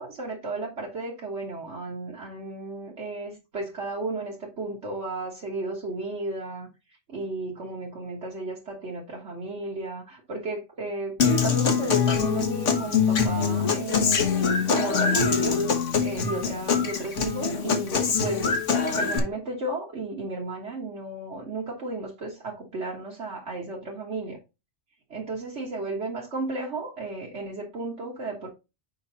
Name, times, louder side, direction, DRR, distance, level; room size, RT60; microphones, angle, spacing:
voice 1, 0.0-6.7 7.1-14.3 14.6-18.5 19.0-24.4 25.1-28.5, right 2 dB, 70° right, 1.9 m, -34 dB
Human voice / Acoustic guitar, 11.2-19.2, left 6 dB, 85° left, 1.6 m, -24 dB
6.4 x 5.2 x 4.0 m
omnidirectional pair, 1.2 m